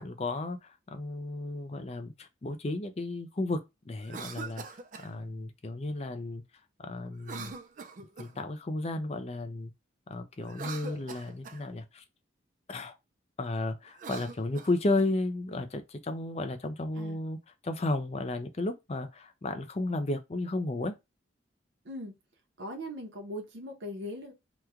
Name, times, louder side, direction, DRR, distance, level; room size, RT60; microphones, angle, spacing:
voice 1, 0.0-4.6 5.0-6.4 6.8-7.5 8.2-9.7 10.1-12.0 12.7-12.9 13.4-17.4 17.6-20.9, left 2 dB, 30° left, 0.4 m, -33 dB
Cough, 4.0-5.1 7.2-8.5 10.4-11.6 13.9-15.1, right 4 dB, 40° right, 0.3 m, -43 dB
voice 2, 22.6-24.3, equal, 75° right, 0.8 m, -40 dB
3.0 x 2.3 x 3.5 m
head